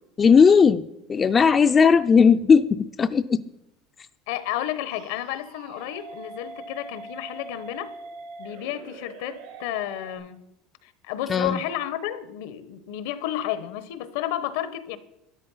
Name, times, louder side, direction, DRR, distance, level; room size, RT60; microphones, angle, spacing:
voice 1, 0.2-0.8 1.1-3.4 11.3-11.6, left 6 dB, 20° left, 0.3 m, -17 dB
voice 2, 4.3-7.9 8.4-10.4 10.8-15.0, left 12 dB, 80° left, 1.0 m, -32 dB
sound 1, 4.9-10.1, right 3 dB, 85° right, 3.2 m, -42 dB
13.0 x 10.0 x 5.6 m
cardioid pair, 155°, 0 cm